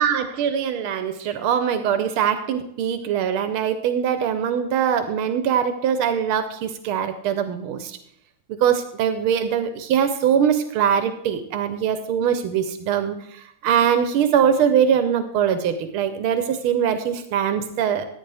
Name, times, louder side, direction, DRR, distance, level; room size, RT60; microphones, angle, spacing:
voice 1, 0.0-8.0 8.6-18.1, right 8 dB, 85° right, 9 dB, 1.6 m, -22 dB
14.5 x 9.3 x 3.4 m, 0.75 s
omnidirectional pair, 2.3 m